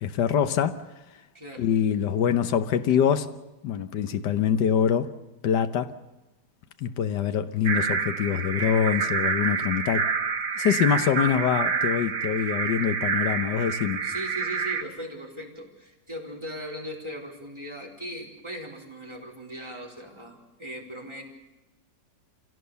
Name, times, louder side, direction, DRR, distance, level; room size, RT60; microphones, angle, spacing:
voice 1, 0.0-0.8 1.6-3.3 3.6-5.1 5.4-5.9 6.8-10.1 10.6-14.0, left 8 dB, 75° left, 1.6 m, -24 dB
sound 1, 7.6-14.8, right 5 dB, 55° right, 1.7 m, -28 dB
voice 2, 14.0-21.2, equal, 15° right, 4.4 m, -38 dB
26.5 x 17.5 x 6.9 m
omnidirectional pair, 1.9 m